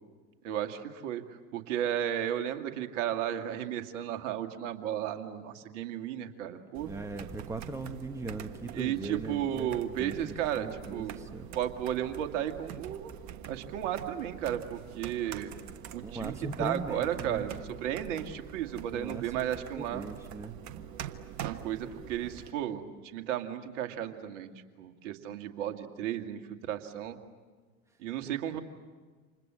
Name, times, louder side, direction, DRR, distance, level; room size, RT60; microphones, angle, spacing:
voice 1, 0.4-6.9 8.7-11.2 11.5-13.1 13.5-15.6 15.9-16.3 16.6-20.0 21.4-24.5 24.8-27.2 28.0-28.6, right 10 dB, 55° right, 6 dB, 2.2 m, -34 dB
sound 1, 6.7-22.5, right 9 dB, 40° right, 1.5 m, -45 dB
voice 2, 6.8-11.5 16.0-17.5 18.9-20.6 28.3-28.4, right 3 dB, 5° right, 6 dB, 1.5 m, -39 dB
29.5 x 27.0 x 7.6 m, 1.4 s
hypercardioid pair, 95°, 43 cm